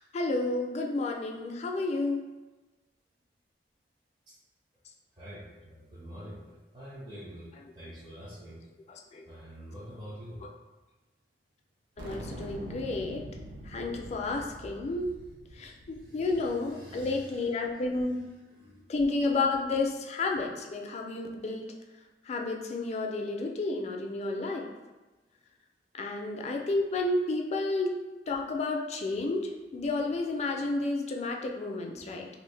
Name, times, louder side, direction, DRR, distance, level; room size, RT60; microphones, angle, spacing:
voice 1, 0.1-2.3 8.9-9.2 12.0-13.2 13.7-15.1 15.6-18.2 18.9-21.7 22.3-24.7 25.9-28.0 28.3-32.3, left 2 dB, 40° left, 2 dB, 0.3 m, -31 dB
voice 2, 5.2-7.5 7.7-8.6 9.3-10.4 15.5-17.4 18.1-19.0, equal, 25° right, -9 dB, 0.6 m, -46 dB
sound 1, 12.0-16.7, right 1 dB, 85° right, 0.5 m, -44 dB
2.7 x 2.4 x 3.2 m, 1.2 s
head